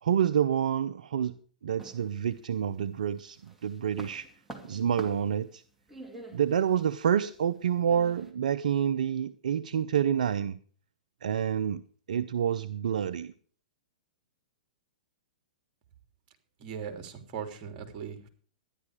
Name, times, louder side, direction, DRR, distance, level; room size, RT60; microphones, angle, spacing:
voice 1, 0.0-1.3 1.6-4.3 4.6-5.6 6.3-10.6 11.2-11.8 12.1-13.3, right 8 dB, 70° right, 11 dB, 0.6 m, -28 dB
sound 1, 1.8-2.8 3.2-8.3, right 2 dB, 5° right, 2.5 m, -48 dB
voice 2, 16.6-18.3, right 7 dB, 40° right, 6 dB, 3.1 m, -39 dB
13.0 x 11.0 x 4.8 m, 0.43 s
hypercardioid pair, 115°, 4 cm